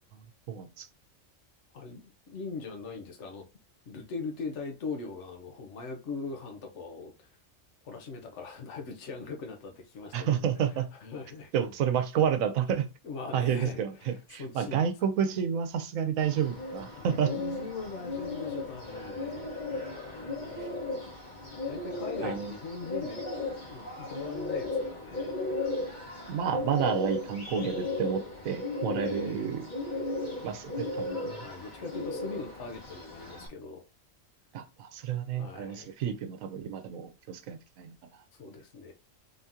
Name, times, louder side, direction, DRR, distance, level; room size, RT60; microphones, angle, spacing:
voice 1, 0.1-0.9 10.1-10.9 11.5-12.9 13.3-17.3 22.2-22.5 26.3-29.7 30.4-31.4 34.5-37.9, right 8 dB, 90° right, 1.1 m, -30 dB
voice 2, 1.7-3.5 3.9-7.3 7.8-10.4 11.0-11.5 13.0-14.7 17.0-19.5 20.3-20.7 21.7-23.2 23.7-25.4 29.0-29.5 31.4-33.8 35.3-35.9 38.3-38.9, left 4 dB, 65° left, 1.2 m, -41 dB
Bird, 16.2-33.5, left 2 dB, 40° left, 1.1 m, -36 dB
3.8 x 2.8 x 3.6 m
omnidirectional pair, 1.4 m